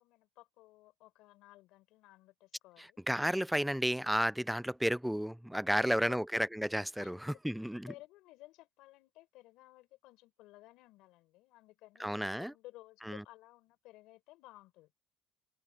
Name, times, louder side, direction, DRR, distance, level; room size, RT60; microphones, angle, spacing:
voice 1, 0.0-3.0 5.8-6.2 7.0-7.1 7.9-14.9, left 18 dB, 70° left, 5.6 m, -56 dB
voice 2, 2.8-7.9 12.0-12.5 13.0-13.2, equal, ahead, 0.3 m, -32 dB
cardioid pair, 140°, 0 cm